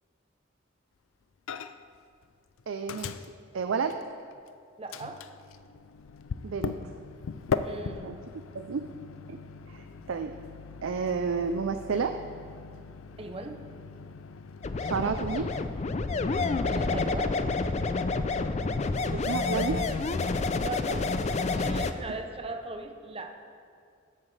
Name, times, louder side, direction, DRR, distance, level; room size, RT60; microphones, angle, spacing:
Microwave oven, 1.5-2.0 2.2-4.5 4.9-15.9, left 5 dB, 90° left, 0.4 m, -39 dB
voice 1, 2.7-3.3 3.5-4.0 6.4-6.7 8.0-8.2 8.5-8.8 9.3-9.4 9.7-9.8 10.1-10.3 10.8-12.1 14.8-15.5 19.1-20.0, right 5 dB, 75° right, 7 dB, 0.4 m, -30 dB
voice 2, 4.8-5.2 7.6-8.3 13.2-13.6 16.5-17.4 20.6-21.1 21.5-23.3, right 3 dB, 30° right, 5 dB, 0.7 m, -38 dB
sound 1, 14.6-21.9, left 3 dB, 35° left, 0.4 m, -29 dB
13.5 x 9.7 x 3.3 m, 2.2 s
head